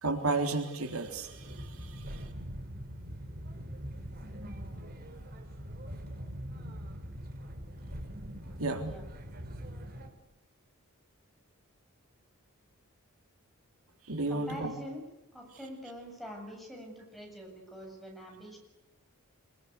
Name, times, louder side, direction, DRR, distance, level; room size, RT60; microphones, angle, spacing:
voice 1, 0.0-2.3 8.6-9.0 14.1-14.7, right 3 dB, 80° right, 5 dB, 3.7 m, -33 dB
sound 1, 1.0-10.1, equal, 45° right, 3.9 m, -43 dB
voice 2, 14.3-15.0 15.3-18.6, equal, ahead, 1 dB, 7.9 m, -45 dB
25.5 x 23.0 x 8.4 m, 0.95 s
head